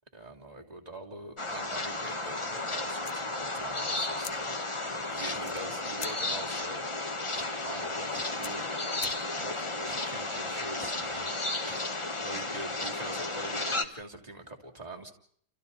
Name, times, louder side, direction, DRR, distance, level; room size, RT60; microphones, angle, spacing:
voice 1, 0.1-4.6 4.8-6.9 7.6-8.7 9.4-11.3 12.2-15.1, right 1 dB, 25° right, 1 dB, 3.3 m, -43 dB
sound 1, 1.4-13.8, left 2 dB, 20° left, 1.5 m, -33 dB
sound 2, 3.0-9.6, left 7 dB, 60° left, 1.5 m, -48 dB
sound 3, 7.2-7.5 8.0-8.4 8.9-9.2 9.8-10.2 10.7-11.0 11.6-11.9, equal, 5° right, 1.4 m, -49 dB
30.0 x 29.5 x 4.1 m, 0.63 s
omnidirectional pair, 1.5 m